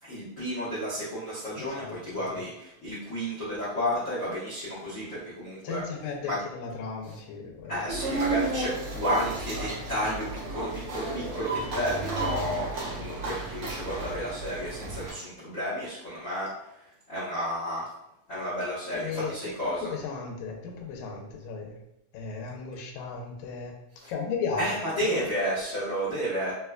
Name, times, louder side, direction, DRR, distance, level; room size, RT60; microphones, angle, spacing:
voice 1, 0.0-5.8 6.2-6.4 7.7-17.9 18.3-19.9 24.0-24.1 24.6-26.5, equal, 65° left, -11 dB, 0.8 m, -32 dB
voice 2, 1.5-2.0 2.3-2.4 5.6-7.8 19.0-21.8 22.1-23.7 24.1-24.7 25.0-25.2, left 5 dB, 85° left, 1 dB, 1.9 m, -35 dB
sound 1, 7.9-15.1, right 3 dB, 70° right, 1.3 m, -32 dB
4.6 x 2.2 x 2.3 m, 0.86 s
omnidirectional pair, 3.3 m